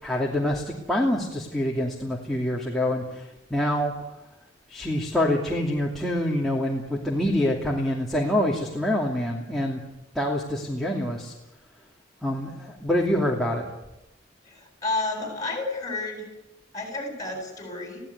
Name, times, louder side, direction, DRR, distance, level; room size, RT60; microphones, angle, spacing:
voice 1, 0.0-3.9 4.7-9.8 10.1-11.3 12.2-13.7, left 1 dB, ahead, -3 dB, 2.8 m, -26 dB
voice 2, 14.4-16.3 16.7-18.0, left 2 dB, 20° left, 3 dB, 8.0 m, -31 dB
22.0 x 16.5 x 9.6 m, 0.94 s
head